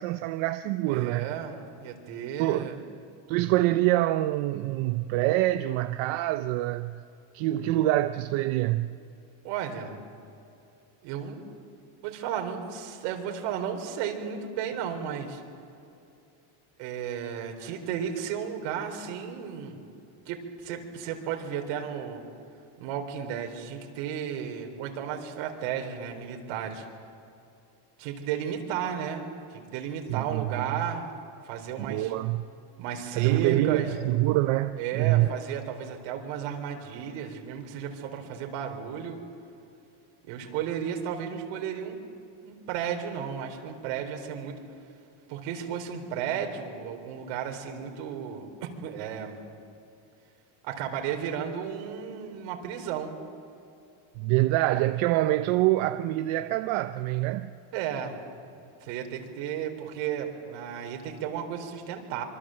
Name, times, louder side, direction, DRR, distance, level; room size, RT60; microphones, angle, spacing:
voice 1, 0.0-1.3 2.4-2.7 3.3-7.0 7.3-9.0 30.2-30.6 31.9-32.5 33.1-35.3 54.2-57.5, right 16 dB, 70° right, 0.8 m, -25 dB
voice 2, 0.9-2.8 9.4-10.0 11.0-11.4 12.0-15.4 16.8-19.8 20.3-22.2 22.8-26.8 28.0-31.1 31.4-32.1 32.8-34.0 34.8-39.2 40.3-42.0 42.4-44.6 45.3-49.4 50.6-53.2 57.7-58.2 58.8-62.2, right 8 dB, 90° right, 3.9 m, -34 dB
25.0 x 24.5 x 7.7 m
cardioid pair, 150°, 49 cm